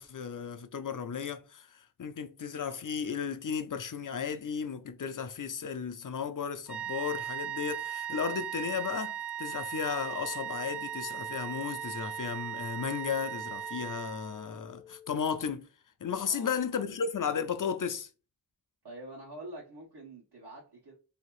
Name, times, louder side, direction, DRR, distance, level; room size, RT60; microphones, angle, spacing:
voice 1, 0.0-1.7 2.0-15.7 16.0-18.1, left 7 dB, 50° left, 0.5 m, -34 dB
sound 1, 6.7-14.5, right 10 dB, ahead, 0.6 m, -38 dB
sound 2, 9.9-15.5, left 9 dB, 90° right, 0.8 m, -53 dB
voice 2, 18.8-20.9, right 1 dB, 70° right, 1.2 m, -46 dB
3.5 x 2.8 x 3.0 m
wide cardioid pair, 60°, 40 cm